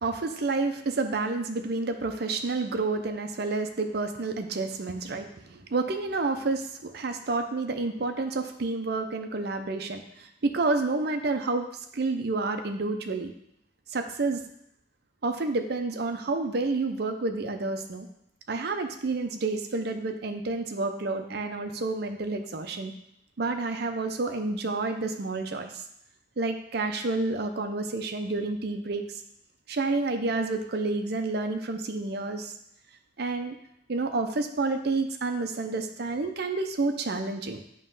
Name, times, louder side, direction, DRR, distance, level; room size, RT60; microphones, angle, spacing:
voice 1, 0.0-11.7 11.9-13.3 13.9-14.4 15.2-18.1 18.5-22.9 23.4-25.8 26.4-29.1 29.7-32.5 33.2-33.6 33.9-37.6, right 3 dB, 55° right, 6 dB, 0.6 m, -29 dB
7.5 x 3.1 x 5.4 m, 0.76 s
head